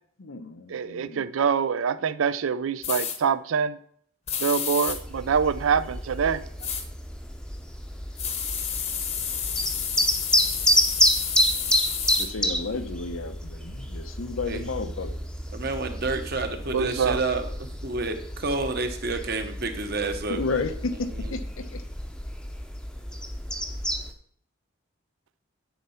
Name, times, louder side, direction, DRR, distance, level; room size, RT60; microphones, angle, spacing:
voice 1, 0.2-1.3 12.1-15.2 20.3-21.8, left 3 dB, 90° left, 0.8 m, -32 dB
voice 2, 0.7-3.8 4.4-6.4 16.7-17.2, right 6 dB, 80° right, 0.4 m, -25 dB
sound 1, 2.8-3.2 4.3-5.0 6.6-6.8 8.2-12.3, left 7 dB, 30° left, 0.8 m, -30 dB
sound 2, 4.9-24.1, equal, 5° left, 0.6 m, -29 dB
voice 3, 15.5-17.5 17.8-20.4 20.9-21.4, right 3 dB, 50° right, 1.0 m, -29 dB
10.0 x 4.3 x 5.6 m
head